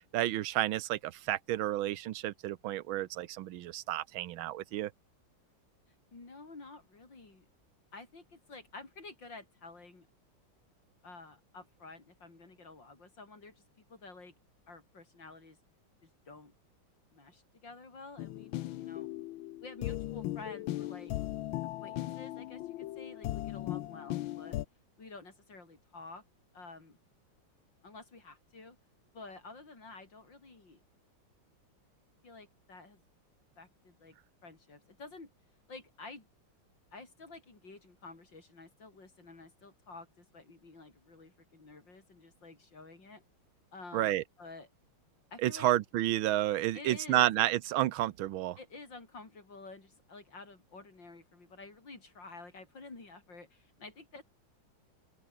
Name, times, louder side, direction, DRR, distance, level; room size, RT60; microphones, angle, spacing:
voice 1, 0.1-4.9 43.9-44.2 45.4-48.6, right 14 dB, 85° right, 1.6 m, -31 dB
voice 2, 6.1-7.5 7.9-10.1 11.0-14.3 14.7-15.6 16.0-16.5 17.1-19.1 19.6-21.1 21.8-24.6 25.0-26.3 26.5-27.0 27.8-28.8 29.1-30.8 32.2-33.0 33.6-34.2 34.4-35.3 35.7-36.3 36.9-43.2 43.7-44.7 45.3-45.7 46.7-47.3 48.6-54.2, left 3 dB, 65° left, 5.6 m, -50 dB
sound 1, 18.2-24.6, left 15 dB, 85° left, 1.5 m, -38 dB
open air
omnidirectional pair, 2.2 m